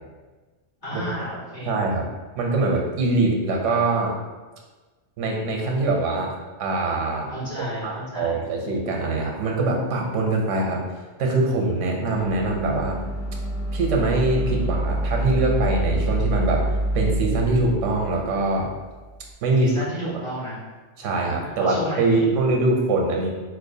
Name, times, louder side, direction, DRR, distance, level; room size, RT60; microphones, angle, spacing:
voice 1, 0.8-1.9 7.3-8.4 19.6-20.6 21.4-22.3, equal, 45° left, -10 dB, 1.7 m, -32 dB
voice 2, 1.7-2.1 2.4-4.2 5.2-6.3 6.6-7.3 7.8-10.8 11.2-13.0 13.7-18.7 19.4-19.7 21.0-23.3, right 2 dB, 85° right, 0 dB, 1.0 m, -23 dB
sound 1, 12.1-19.2, right 1 dB, 65° left, 1.0 m, -27 dB
4.2 x 2.4 x 2.6 m, 1.3 s
omnidirectional pair, 1.3 m